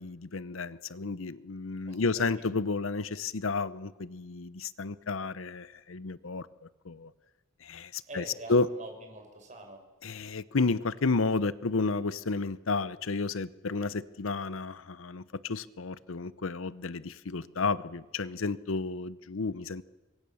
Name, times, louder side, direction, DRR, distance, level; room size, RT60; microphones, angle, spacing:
voice 1, 0.0-6.5 6.8-7.1 7.6-8.2 8.5-8.7 10.0-19.8, left 3 dB, 75° left, 17 dB, 0.8 m, -31 dB
voice 2, 1.9-2.5 8.1-9.8, right 2 dB, 35° right, 4 dB, 5.7 m, -45 dB
26.0 x 23.0 x 7.1 m, 1.1 s
head